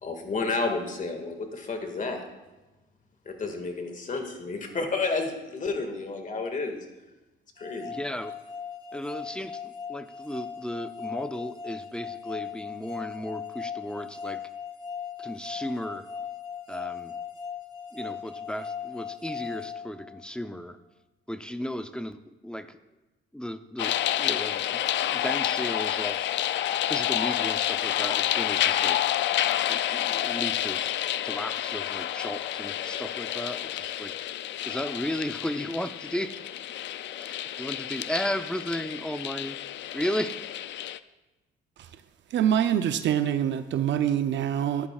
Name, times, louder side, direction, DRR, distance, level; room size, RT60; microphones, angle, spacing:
voice 1, 0.0-2.2 3.3-6.9 7.6-7.9, left 3 dB, 40° left, 4 dB, 1.9 m, -31 dB
sound 1, 7.6-20.5, left 7 dB, 25° left, 1.4 m, -38 dB
voice 2, 7.8-8.3 8.9-14.4 15.2-16.1 16.7-17.2 17.9-20.8 21.3-22.8 23.3-26.3 26.9-29.0 29.7-30.8 31.2-34.1 34.6-36.3 37.2-39.6 39.9-40.4, equal, 5° left, 10 dB, 0.6 m, -35 dB
sound 2, 23.8-41.0, left 12 dB, 65° left, 0.4 m, -29 dB
voice 3, 42.3-44.9, right 10 dB, 70° right, 10 dB, 0.6 m, -25 dB
14.5 x 10.5 x 2.4 m, 1.1 s
cardioid pair, 90°, 20 cm